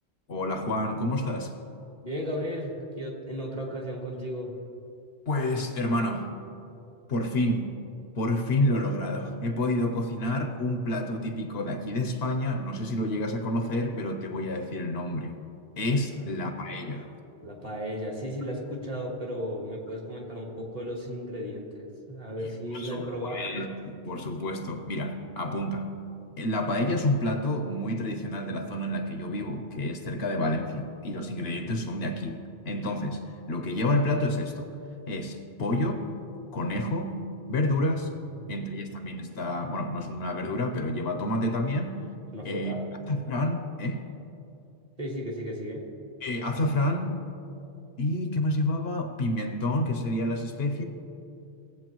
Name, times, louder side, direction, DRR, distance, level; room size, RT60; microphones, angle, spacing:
voice 1, 0.3-1.5 5.3-6.3 7.1-7.7 8.2-15.3 15.8-17.1 22.7-25.9 26.4-32.4 32.6-33.2 33.5-34.7 35.1-36.1 36.5-37.2 37.5-38.1 38.5-42.0 42.4-42.7 43.1-44.1 46.2-47.2 48.0-50.8, left 1 dB, 65° left, 6 dB, 1.0 m, -29 dB
voice 2, 2.0-4.5 16.1-16.4 17.4-23.4 38.3-38.5 42.3-42.8 45.0-45.9, equal, 35° right, -1 dB, 1.5 m, -35 dB
17.5 x 7.8 x 3.0 m, 2.7 s
omnidirectional pair, 1.2 m